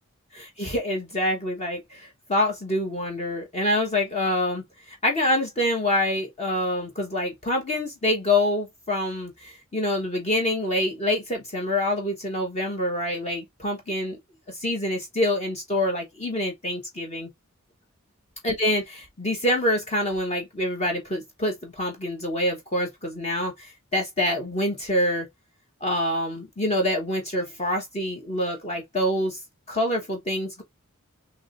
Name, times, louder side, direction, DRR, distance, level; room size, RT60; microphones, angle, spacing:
voice 1, 0.3-4.6 4.9-14.2 14.5-17.3 18.4-25.3 25.8-29.4 29.7-30.6, left 1 dB, 30° left, 1.1 m, -26 dB
4.7 x 3.0 x 2.5 m
head